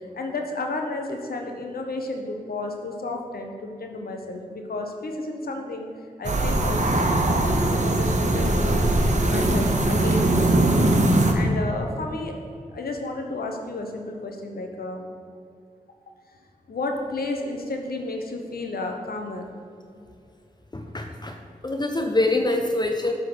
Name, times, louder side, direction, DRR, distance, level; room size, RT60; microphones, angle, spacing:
voice 1, 0.0-5.9 6.2-8.8 9.3-10.9 11.3-12.4 12.7-15.0 16.7-19.5, left 2 dB, 75° left, 3 dB, 0.9 m, -32 dB
sound 1, 6.2-11.3, right 2 dB, 50° right, 0.9 m, -21 dB
voice 2, 20.7-21.4 21.6-23.1, left 2 dB, 25° left, 4 dB, 0.6 m, -24 dB
8.0 x 3.8 x 6.1 m, 2.5 s
cardioid pair, 45°, 16 cm